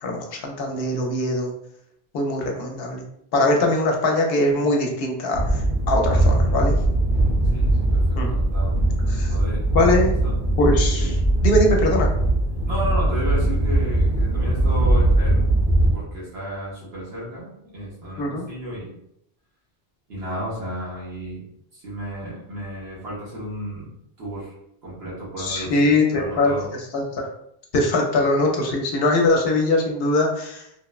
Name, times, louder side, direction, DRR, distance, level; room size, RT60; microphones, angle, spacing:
voice 1, 0.0-1.5 2.1-3.0 3.3-6.7 8.2-8.3 9.1-9.3 9.7-10.1 10.6-11.1 11.4-12.1 18.2-18.4 25.4-26.5 26.9-27.3 27.7-30.6, left 2 dB, 70° left, 1 dB, 0.7 m, -21 dB
sound 1, 5.3-15.9, right 1 dB, 15° right, 0.5 m, -20 dB
voice 2, 7.4-8.8 9.0-9.6 10.0-10.4 11.0-11.1 12.7-15.5 15.9-18.9 20.1-21.4 21.7-23.9 24.2-24.5 24.8-26.7, right 1 dB, 80° right, -8 dB, 1.2 m, -33 dB
3.0 x 2.0 x 2.3 m, 0.75 s
omnidirectional pair, 1.0 m